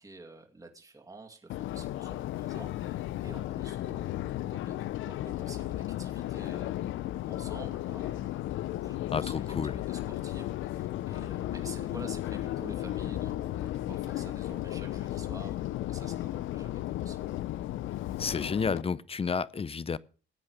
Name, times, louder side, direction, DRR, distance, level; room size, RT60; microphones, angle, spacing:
voice 1, 0.0-6.8 7.3-17.4, right 3 dB, 15° right, 2.3 m, -50 dB
Subway metro underground, 1.5-18.8, left 14 dB, 80° left, 0.6 m, -34 dB
voice 2, 9.1-9.8 18.2-20.0, left 5 dB, 30° left, 0.6 m, -31 dB
15.5 x 8.5 x 6.3 m
cardioid pair, 90°, 20 cm